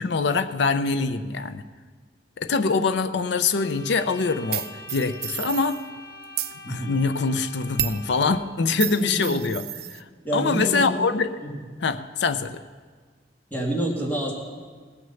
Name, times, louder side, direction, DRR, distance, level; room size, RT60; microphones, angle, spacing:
voice 1, 0.0-1.6 2.4-5.8 6.7-9.6 9.9-10.0 10.3-11.3 11.8-12.6, left 4 dB, 70° left, 11 dB, 0.5 m, -24 dB
sound 1, 3.3-8.6, left 3 dB, 55° left, 1.1 m, -44 dB
sound 2, 4.5-5.8 6.2-6.6 7.8-8.1 8.8-10.0, right 13 dB, 55° right, 0.5 m, -31 dB
voice 2, 6.7-7.0 8.8-9.5 10.2-11.1 11.4-11.6 13.5-14.3, right 1 dB, 10° left, -3 dB, 2.2 m, -28 dB
18.0 x 6.4 x 6.9 m, 1.5 s
head